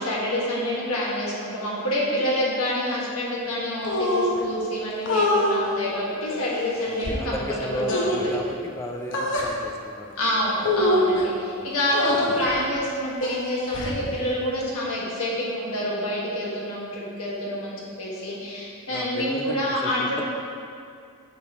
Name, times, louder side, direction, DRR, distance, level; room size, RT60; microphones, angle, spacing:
voice 1, 0.0-8.2 10.2-20.2, left 1 dB, 85° left, -5 dB, 1.7 m, -27 dB
sound 1, 3.8-4.4 5.1-5.5 6.3-7.1 7.9-8.3 9.1-9.5 10.6-11.2 11.9-12.5 13.2-14.0, left 1 dB, 60° left, 0.9 m, -25 dB
voice 2, 6.8-10.4 11.6-11.7 18.9-20.2, equal, 15° left, 1 dB, 0.4 m, -34 dB
9.5 x 5.6 x 3.0 m, 2.4 s
head